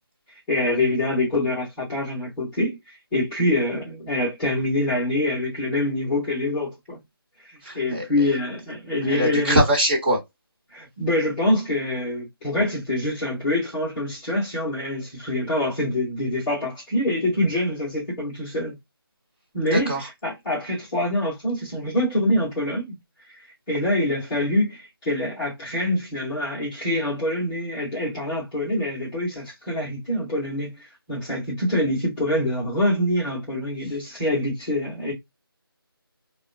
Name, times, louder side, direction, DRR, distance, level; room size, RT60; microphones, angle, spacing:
voice 1, 0.5-7.0 7.4-9.6 10.7-18.8 19.5-19.9 20.2-23.0 23.3-35.1, left 1 dB, 5° left, 0.7 m, -25 dB
voice 2, 7.6-8.1 9.0-10.2 19.7-20.1, right 1 dB, 25° right, 0.9 m, -22 dB
3.4 x 2.1 x 2.4 m
figure-of-eight pair, 160°, 13 cm